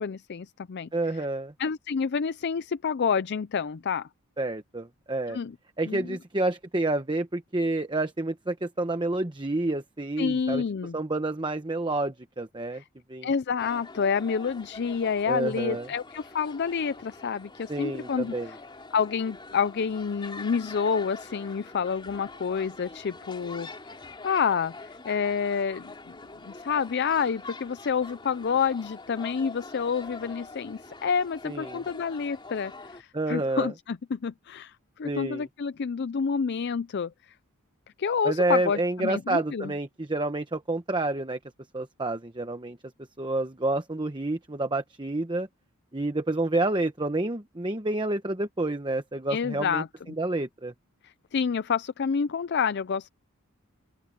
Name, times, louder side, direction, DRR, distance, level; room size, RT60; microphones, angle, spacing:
voice 1, 0.0-0.9 1.6-4.1 5.3-5.6 5.9-6.2 10.2-11.0 12.7-12.8 13.2-18.6 18.9-23.7 24.2-24.7 25.0-26.2 26.5-34.7 35.0-37.1 38.0-39.7 49.3-49.9 51.0-53.1, left 6 dB, 50° left, 0.4 m, -28 dB
voice 2, 0.9-1.5 4.4-5.4 5.8-10.6 10.9-12.8 13.1-13.3 15.3-15.9 17.7-18.5 31.4-31.8 33.1-33.7 35.0-35.5 38.2-41.4 41.7-42.8 43.2-45.5 45.9-49.8 50.2-50.7, right 2 dB, 20° right, 1.0 m, -29 dB
sound 1, 13.6-33.0, left 3 dB, 25° left, 3.1 m, -44 dB
open air
head